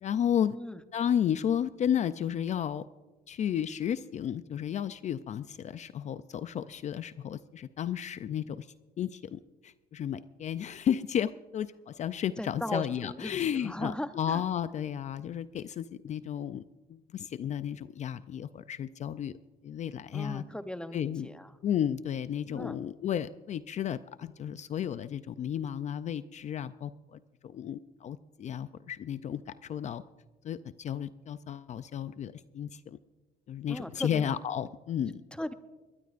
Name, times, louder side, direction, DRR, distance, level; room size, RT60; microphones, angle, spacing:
voice 1, 0.0-0.6 0.9-2.8 3.3-8.7 9.0-16.6 16.9-19.4 19.6-20.4 20.9-21.3 21.6-30.0 30.4-33.0 33.5-35.2, left 9 dB, 45° left, 14 dB, 0.4 m, -33 dB
voice 2, 12.4-14.4 20.1-21.5 22.5-22.8 33.7-34.3 35.3-35.5, left 1 dB, 5° left, 10 dB, 0.7 m, -38 dB
21.5 x 19.0 x 2.5 m, 1.2 s
cardioid pair, 110°, 17 cm